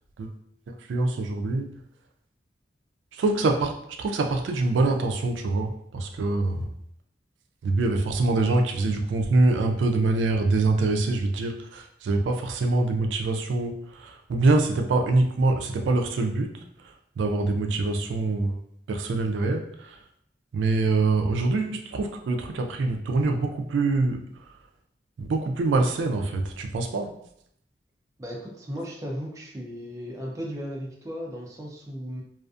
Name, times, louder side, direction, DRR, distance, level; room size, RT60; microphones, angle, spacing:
voice 1, 0.7-1.7 3.1-3.7 4.0-6.7 7.6-16.5 17.2-18.6 18.9-20.0 20.5-24.2 25.2-27.1, right 2 dB, 85° right, 4 dB, 0.3 m, -24 dB
voice 2, 28.2-32.2, equal, 15° right, -2 dB, 0.4 m, -36 dB
2.5 x 2.4 x 2.3 m, 0.70 s
head